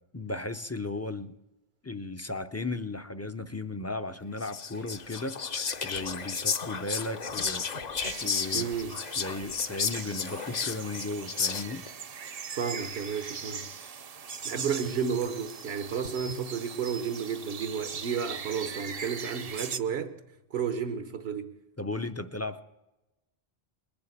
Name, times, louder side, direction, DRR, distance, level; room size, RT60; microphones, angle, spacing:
voice 1, 0.1-1.3 1.8-7.7 8.2-8.7 9.2-11.8 21.8-22.6, left 2 dB, 20° left, 0.5 m, -35 dB
Whispering, 4.4-11.9, left 5 dB, 45° left, 0.8 m, -33 dB
sound 1, 8.0-19.8, right 6 dB, 45° right, 0.6 m, -40 dB
voice 2, 8.5-8.9 12.5-13.7 14.4-20.2 20.5-21.5, right 6 dB, 75° right, 1.2 m, -32 dB
20.5 x 7.0 x 9.3 m
omnidirectional pair, 1.1 m